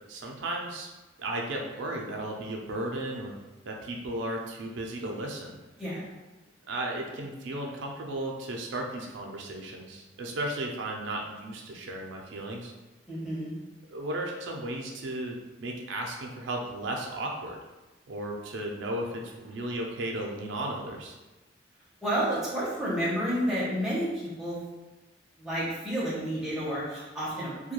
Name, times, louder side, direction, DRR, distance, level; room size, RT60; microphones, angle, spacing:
voice 1, 0.1-0.9 1.2-3.3 3.7-5.6 6.7-12.7 13.9-17.6 18.1-21.2, right 1 dB, 80° right, 1 dB, 0.4 m, -35 dB
voice 2, 13.1-13.5 22.0-24.6 25.4-27.7, equal, ahead, -8 dB, 0.7 m, -30 dB
2.3 x 2.2 x 2.9 m, 1.1 s
head